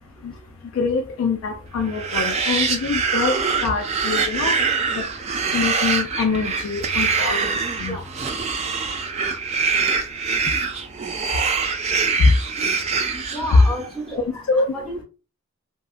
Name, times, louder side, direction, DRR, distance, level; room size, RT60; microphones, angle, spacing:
voice 1, 0.7-4.6 5.0-5.1 5.5-8.0 12.2-12.3 13.5-13.6 14.5-14.7, left 4 dB, 70° left, 0.3 m, -23 dB
sound 1, 1.9-13.9, right 5 dB, 30° right, 0.3 m, -24 dB
voice 2, 13.3-15.0, equal, 5° left, 0.8 m, -31 dB
2.9 x 2.4 x 2.4 m
head